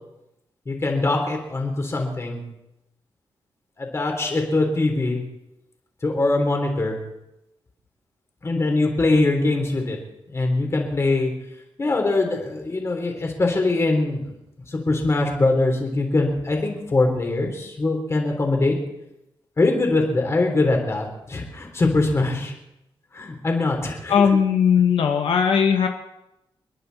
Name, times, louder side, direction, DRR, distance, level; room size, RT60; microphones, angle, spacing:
voice 1, 0.7-2.4 3.8-5.2 6.0-7.0 8.4-10.0 10.3-11.3 11.8-14.3 14.7-18.8 19.6-22.5 23.1-24.1, left 2 dB, 30° left, 2 dB, 3.6 m, -22 dB
voice 2, 24.1-25.9, left 7 dB, 85° left, 4 dB, 1.3 m, -18 dB
29.5 x 11.0 x 4.2 m, 0.88 s
wide cardioid pair, 140°, 9 cm